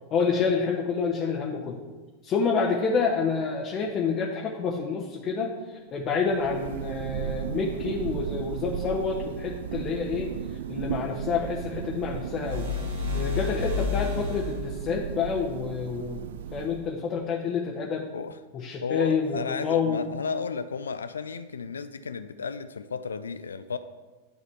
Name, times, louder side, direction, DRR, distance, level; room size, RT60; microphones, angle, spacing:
voice 1, 0.1-1.8 2.2-12.6 13.1-18.1 18.5-20.1, left 5 dB, 30° left, -1 dB, 1.2 m, -28 dB
Thunder, 6.1-17.1, right 10 dB, 60° right, 0.3 m, -35 dB
sound 1, 12.3-14.8, left 7 dB, 75° right, 1.7 m, -30 dB
voice 2, 18.8-23.8, left 5 dB, 70° left, 13 dB, 0.4 m, -33 dB
11.5 x 4.1 x 7.2 m, 1.3 s
figure-of-eight pair, 90°, 0 cm